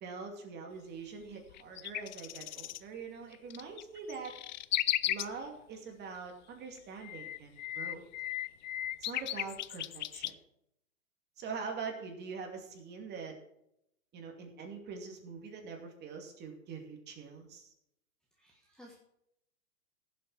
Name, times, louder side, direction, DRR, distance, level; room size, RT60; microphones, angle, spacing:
voice 1, 0.0-4.3 5.1-8.0 9.0-10.3 11.4-13.4 14.1-17.7, right 5 dB, 25° right, 3 dB, 2.5 m, -44 dB
sound 1, 1.5-2.8 3.3-5.3 6.8-10.3, left 13 dB, 35° left, 0.4 m, -35 dB
voice 2, 18.4-19.0, equal, ahead, -3 dB, 1.5 m, -56 dB
16.0 x 7.5 x 4.7 m, 0.79 s
hypercardioid pair, 115°, 41 cm